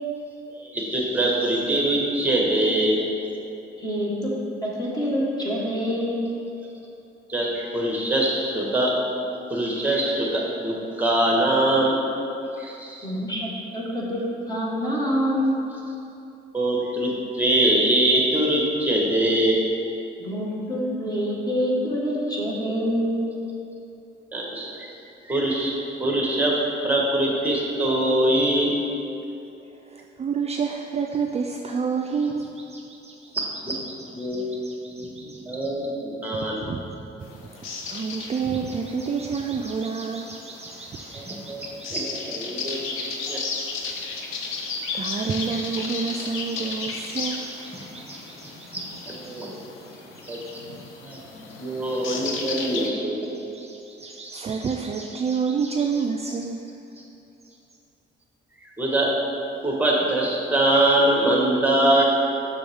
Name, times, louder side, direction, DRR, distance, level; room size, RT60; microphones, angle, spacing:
voice 1, 0.5-3.0 7.3-8.9 9.5-12.0 12.6-13.1 16.5-19.6 24.3-24.9 25.2-26.6 26.8-28.7 33.6-33.7 34.1-34.6 35.0-36.6 41.1-42.8 43.3-43.4 48.1-48.2 48.7-49.7 50.2-50.4 51.0-53.4 54.2-54.3 58.8-59.1 59.6-62.0, right 1 dB, 10° right, -3 dB, 1.5 m, -23 dB
voice 2, 3.8-4.3 4.6-6.2 13.0-14.2 14.5-15.6 20.2-23.2, equal, 20° left, -5 dB, 1.6 m, -26 dB
voice 3, 29.8-33.4 34.0-35.4 36.4-41.9 44.9-48.9 49.3-50.3 53.3-56.6 57.4-57.6, right 5 dB, 30° right, 2 dB, 0.4 m, -30 dB
sound 1, 37.2-52.9, left 4 dB, 90° left, 0.7 m, -35 dB
6.9 x 6.1 x 3.6 m, 2.8 s
cardioid pair, 90°, 20 cm